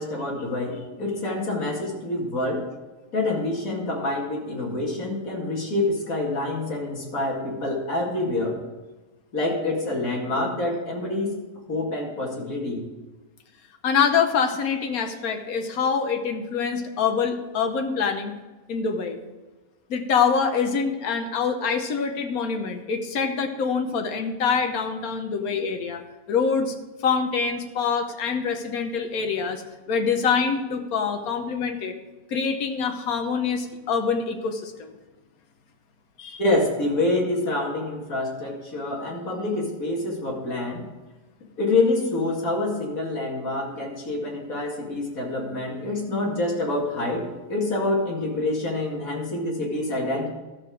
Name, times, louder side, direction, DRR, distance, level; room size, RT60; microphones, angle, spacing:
voice 1, 0.0-2.7 3.1-8.6 9.3-11.4 11.7-12.9 36.4-40.8 41.6-50.3, left 2 dB, 75° left, -2 dB, 2.6 m, -26 dB
voice 2, 13.8-18.3 18.7-19.2 19.9-26.0 26.3-26.7 27.0-29.6 29.9-31.9 32.3-34.9 36.2-36.4, left 6 dB, 90° left, 6 dB, 1.4 m, -25 dB
13.0 x 6.2 x 4.9 m, 1.2 s
omnidirectional pair, 1.5 m